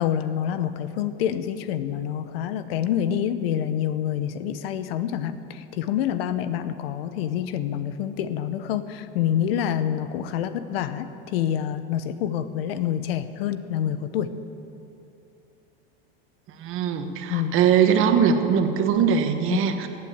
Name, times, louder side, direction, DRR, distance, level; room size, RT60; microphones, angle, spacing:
voice 1, 0.0-14.3 17.3-17.6 19.5-19.6, left 10 dB, 75° left, 12 dB, 1.0 m, -27 dB
voice 2, 16.5-19.9, right 7 dB, 45° right, 6 dB, 1.4 m, -21 dB
15.0 x 9.1 x 8.1 m, 2.8 s
supercardioid pair, 120°, 30 cm